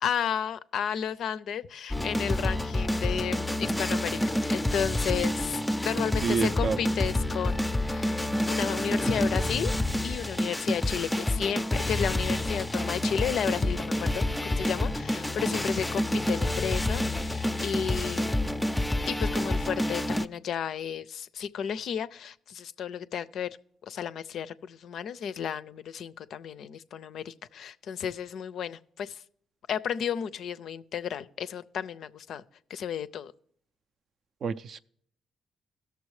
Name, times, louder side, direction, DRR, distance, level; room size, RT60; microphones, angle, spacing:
voice 1, 0.0-9.7 10.0-18.7 19.1-23.5 23.8-29.2 29.7-32.4 32.7-33.3, left 8 dB, 70° left, 0.4 m, -33 dB
sound 1, 1.9-20.3, left 1 dB, 10° left, 0.4 m, -28 dB
voice 2, 6.2-6.8 34.4-34.8, right 5 dB, 60° right, 0.4 m, -28 dB
17.0 x 6.7 x 3.2 m
cardioid pair, 90°, 0 cm